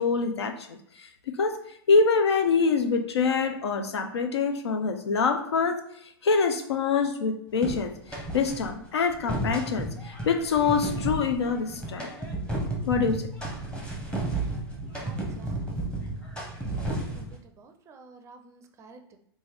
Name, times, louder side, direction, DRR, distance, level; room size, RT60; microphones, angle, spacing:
voice 1, 0.0-1.6 1.9-5.8 6.2-12.1 12.8-13.3, left 5 dB, 90° left, 7 dB, 0.6 m, -25 dB
sound 1, 7.6-8.7 9.1-17.4, right 2 dB, 5° left, 0.7 m, -33 dB
voice 2, 14.9-15.9 16.6-19.2, right 3 dB, 20° right, 6 dB, 0.4 m, -52 dB
3.1 x 2.5 x 3.8 m, 0.71 s
hypercardioid pair, 130°, 13 cm